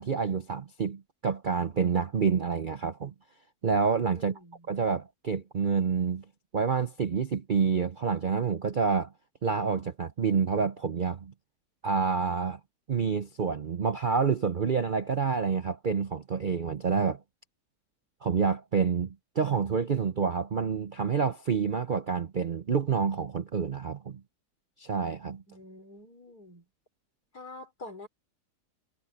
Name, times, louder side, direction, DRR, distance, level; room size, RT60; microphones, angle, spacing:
voice 1, 0.0-3.1 3.6-4.4 4.7-6.2 6.5-9.1 9.4-11.3 11.8-12.6 12.9-17.2 18.2-24.2 24.8-25.4, right 5 dB, 45° right, 0.6 m, -28 dB
voice 2, 4.2-4.7 25.5-26.6 27.3-28.1, left 2 dB, 70° left, 5.7 m, -46 dB
omnidirectional pair, 1.7 m